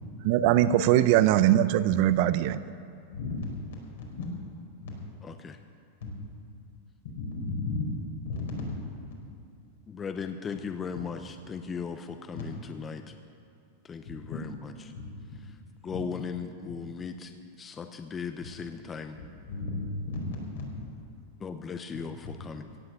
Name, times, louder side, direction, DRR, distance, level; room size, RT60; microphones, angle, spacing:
voice 1, 0.2-2.6, right 12 dB, 55° right, 15 dB, 0.5 m, -21 dB
voice 2, 3.1-3.5 4.2-4.3 4.8-4.9 7.1-7.9 8.2-8.6 12.3-12.4 14.3-14.4 14.9-15.4 19.5-20.3 20.5-20.7 22.2-22.3, left 3 dB, 80° left, -1 dB, 4.4 m, -34 dB
voice 3, 5.2-5.6 9.9-13.1 13.8-14.9 15.8-19.2 21.4-22.8, left 6 dB, 20° left, 8 dB, 0.6 m, -37 dB
16.5 x 7.8 x 7.5 m, 2.4 s
supercardioid pair, 135°, 0 cm